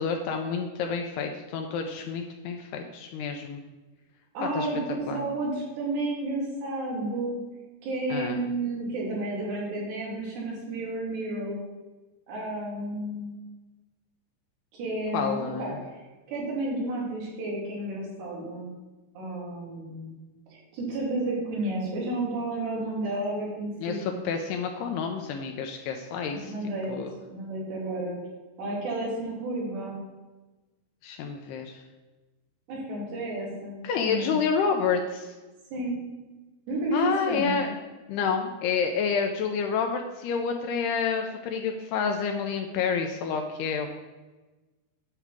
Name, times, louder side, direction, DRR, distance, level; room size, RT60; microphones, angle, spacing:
voice 1, 0.0-3.6 4.5-4.7 5.1-5.2 8.1-8.4 15.1-15.8 23.8-26.5 26.9-27.1 31.0-31.8 33.8-35.4 36.9-37.8 38.1-43.9, left 6 dB, 80° left, 4 dB, 2.4 m, -29 dB
voice 2, 4.3-7.4 7.8-11.6 12.3-13.4 14.7-15.7 16.3-18.7 19.1-20.2 20.5-24.2 26.3-26.9 27.3-28.2 28.6-30.0 32.7-33.8 34.0-34.4 35.7-36.0 36.7-37.5, right 2 dB, 70° right, -4 dB, 4.9 m, -31 dB
10.0 x 4.6 x 7.3 m, 1.2 s
omnidirectional pair, 5.1 m